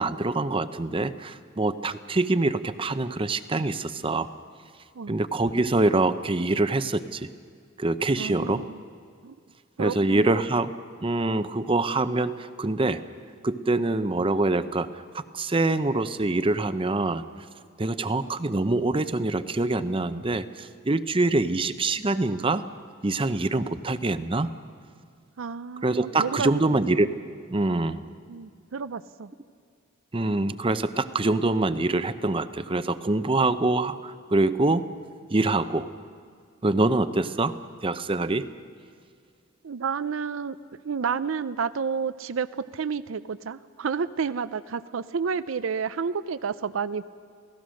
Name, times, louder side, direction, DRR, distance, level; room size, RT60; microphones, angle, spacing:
voice 1, 0.0-4.3 5.1-7.3 7.8-8.6 9.8-10.7 11.0-13.0 13.4-17.2 17.8-22.6 23.0-24.5 25.8-27.1 27.5-28.0 30.1-34.8 35.3-35.9 36.6-37.5 37.8-38.5, right 2 dB, 25° right, 12 dB, 0.7 m, -25 dB
voice 2, 8.2-8.8 9.2-9.4 9.8-10.4 25.4-26.5 28.3-29.3 39.6-40.6 40.8-42.5 42.7-47.1, right 6 dB, 80° right, 15 dB, 0.5 m, -30 dB
28.5 x 17.5 x 6.4 m, 2.1 s
head